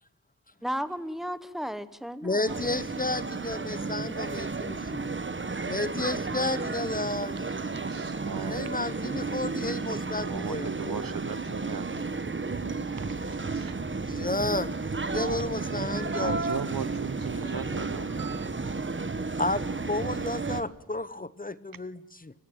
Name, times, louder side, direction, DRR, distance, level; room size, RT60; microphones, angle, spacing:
voice 1, 0.6-2.6, equal, ahead, 13 dB, 1.5 m, -34 dB
voice 2, 2.2-5.1 5.7-7.4 8.5-10.7 14.0-14.7 15.1-16.4 17.4-17.5 19.4-22.3, left 2 dB, 25° left, 16 dB, 1.0 m, -32 dB
sound 1, 2.5-20.6, right 3 dB, 35° right, 1.4 m, -32 dB
voice 3, 7.8-8.8 10.2-13.8 14.3-14.6 16.1-18.7, right 7 dB, 75° right, 16 dB, 1.1 m, -39 dB
29.0 x 16.5 x 9.1 m, 1.1 s
wide cardioid pair, 70°, 35 cm